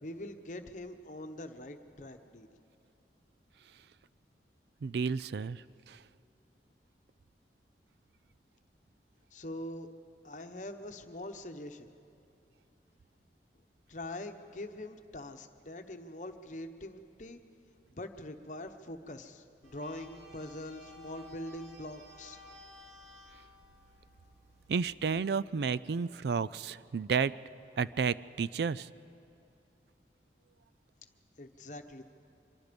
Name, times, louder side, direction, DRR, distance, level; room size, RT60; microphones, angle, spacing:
voice 1, 0.0-2.5 9.3-9.9 10.2-11.9 13.9-17.4 17.9-22.4 31.4-32.0, left 1 dB, 45° left, 7 dB, 1.0 m, -43 dB
voice 2, 4.8-5.6 5.9-6.0 24.7-27.3 27.8-28.9, right 5 dB, 70° right, 18 dB, 0.4 m, -31 dB
sound 1, 19.6-25.1, left 1 dB, 90° right, 2.9 m, -55 dB
24.5 x 23.0 x 5.2 m, 2.7 s
head